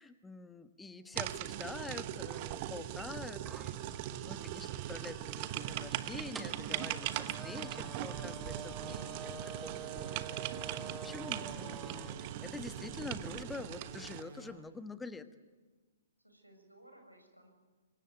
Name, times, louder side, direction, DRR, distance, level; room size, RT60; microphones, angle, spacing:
voice 1, 0.0-10.2 10.6-15.2, left 3 dB, 10° left, 10 dB, 1.4 m, -46 dB
sound 1, 1.1-14.2, right 13 dB, 35° right, 1.2 m, -40 dB
sound 2, 3.4-12.2, right 5 dB, 10° right, 2.0 m, -48 dB
sound 3, 5.5-14.5, right 2 dB, 60° right, 7.4 m, -51 dB
voice 2, 16.2-17.5, right 1 dB, 90° right, 5 dB, 6.5 m, -62 dB
26.0 x 23.5 x 9.2 m, 1.3 s
figure-of-eight pair, 115°, 0 cm